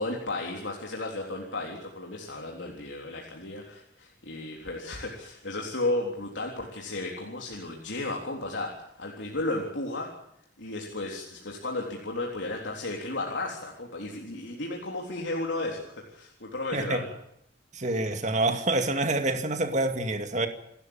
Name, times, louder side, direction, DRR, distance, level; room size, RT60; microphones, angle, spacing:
voice 1, 0.0-10.1 10.6-17.1, left 2 dB, 85° left, 0 dB, 3.6 m, -34 dB
voice 2, 17.7-20.5, right 2 dB, 40° right, 7 dB, 2.3 m, -27 dB
28.5 x 13.0 x 8.9 m, 0.77 s
head